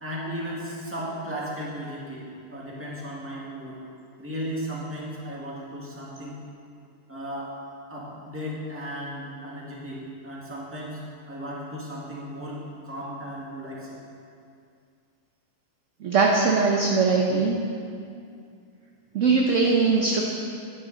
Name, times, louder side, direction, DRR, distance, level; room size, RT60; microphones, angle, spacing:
voice 1, 0.0-3.8 4.2-6.4 7.1-7.5 7.9-11.0 11.3-14.0, equal, 10° right, -6 dB, 1.7 m, -35 dB
voice 2, 16.0-17.7 19.1-20.2, right 4 dB, 55° right, -1 dB, 1.0 m, -21 dB
10.0 x 9.4 x 4.0 m, 2.4 s
omnidirectional pair, 1.8 m